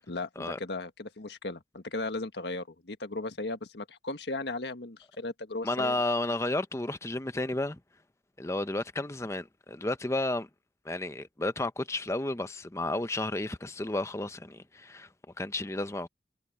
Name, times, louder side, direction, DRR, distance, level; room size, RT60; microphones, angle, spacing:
voice 1, 0.1-5.9, left 2 dB, 80° left, 1.6 m, -36 dB
voice 2, 5.6-7.8 8.4-10.5 10.8-15.1 15.4-16.1, left 2 dB, 15° left, 0.7 m, -32 dB
head